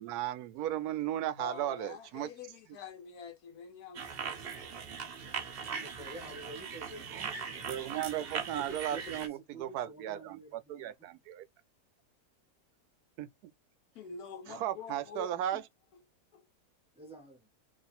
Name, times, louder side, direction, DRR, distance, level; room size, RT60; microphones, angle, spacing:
voice 1, 0.0-2.3 7.1-7.4 7.6-11.4 13.2-13.3 14.5-15.6, right 12 dB, 75° right, 1.1 m, -36 dB
voice 2, 1.4-4.1 13.9-15.6 16.3-16.4, left 6 dB, 70° left, 1.4 m, -46 dB
sound 1, 3.9-9.3, right 6 dB, 50° right, 0.8 m, -40 dB
voice 3, 5.6-7.7 8.6-10.9 17.0-17.5, right 2 dB, 5° right, 0.6 m, -49 dB
3.2 x 2.4 x 4.2 m
omnidirectional pair, 1.7 m